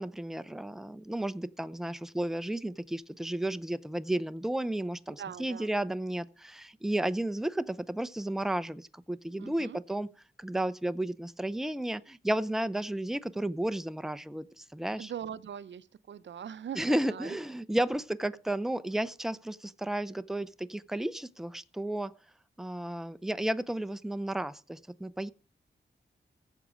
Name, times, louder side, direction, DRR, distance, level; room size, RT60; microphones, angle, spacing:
voice 1, 0.0-10.1 10.4-15.1 16.8-22.1 22.6-25.3, right 1 dB, ahead, 0.5 m, -33 dB
voice 2, 5.2-5.7 9.4-9.8 15.0-17.4, right 8 dB, 75° right, 0.5 m, -41 dB
16.0 x 7.2 x 5.1 m
wide cardioid pair, 95°, 19 cm